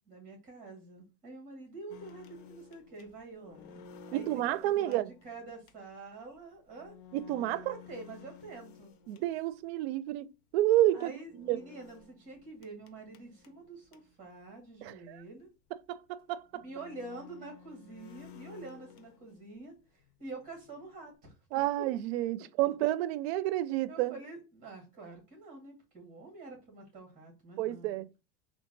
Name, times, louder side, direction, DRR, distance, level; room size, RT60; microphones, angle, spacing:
voice 1, 0.1-3.8 4.1-6.9 7.3-8.9 10.9-15.5 16.5-21.8 23.9-28.0, right 3 dB, 25° right, 2.0 m, -47 dB
sound 1, 1.9-9.7 11.2-14.3 14.6-14.7 15.0-15.1 15.8-15.9 16.5-19.7 20.0-21.1, left 7 dB, 85° left, 0.8 m, -54 dB
voice 2, 4.1-5.1 7.1-7.8 9.1-10.3 10.5-11.1 11.4-11.6 14.8-15.2 15.7-16.6 21.5-24.2 27.6-28.1, right 15 dB, 85° right, 0.5 m, -30 dB
3.7 x 2.4 x 3.8 m
cardioid pair, 175°, 31 cm